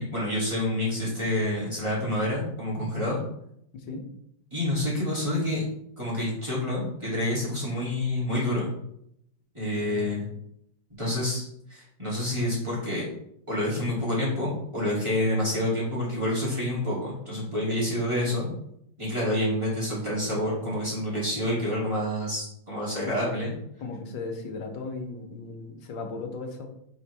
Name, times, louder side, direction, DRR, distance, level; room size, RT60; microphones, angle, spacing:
voice 1, 0.0-3.2 4.5-5.6 6.0-8.7 9.5-10.3 11.0-11.4 11.7-13.0 13.5-18.5 19.0-23.5, left 1 dB, 15° right, -8 dB, 2.7 m, -28 dB
voice 2, 3.7-4.0 9.8-10.2 18.2-18.4 23.0-23.4 23.8-26.7, left 3 dB, 80° left, 4 dB, 1.7 m, -37 dB
7.2 x 4.9 x 3.4 m, 0.73 s
omnidirectional pair, 2.0 m